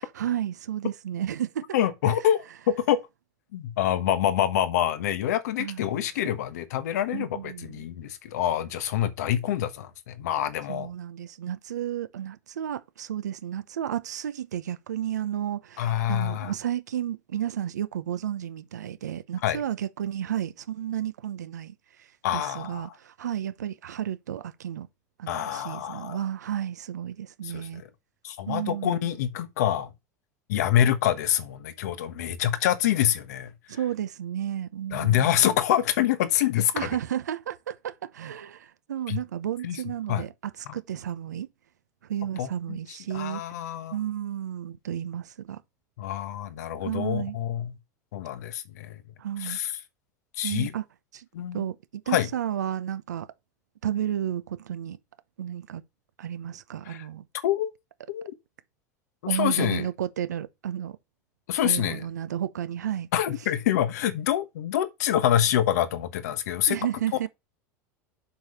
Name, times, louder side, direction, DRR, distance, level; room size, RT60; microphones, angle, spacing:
voice 1, 0.2-1.8 5.6-6.0 7.1-7.8 10.7-24.9 25.2-27.8 28.5-29.1 33.7-35.5 36.7-41.5 42.0-43.4 43.9-45.6 46.8-47.4 49.2-49.6 50.4-50.8 51.1-51.3 51.5-53.3 53.8-55.0 55.4-55.8 56.2-57.3 59.3-61.0 61.6-63.1 66.7-67.3, right 10 dB, 90° right, 0.9 m, -32 dB
voice 2, 1.7-2.4 2.9-3.0 3.5-10.9 15.8-16.5 19.4-19.6 22.2-22.9 25.3-26.2 27.4-27.9 28.2-29.9 30.5-33.5 34.9-36.9 39.1-39.2 39.6-39.8 40.1-40.2 42.4-42.8 43.1-44.0 46.0-47.8 48.1-49.0 49.4-49.7 50.4-50.7 51.3-51.6 52.1-52.3 56.9-57.0 57.4-57.7 58.1-58.3 59.2-59.9 61.5-62.0 63.1-66.8, left 11 dB, 75° left, 1.2 m, -26 dB
7.6 x 5.0 x 5.4 m
hypercardioid pair, 95°, 9 cm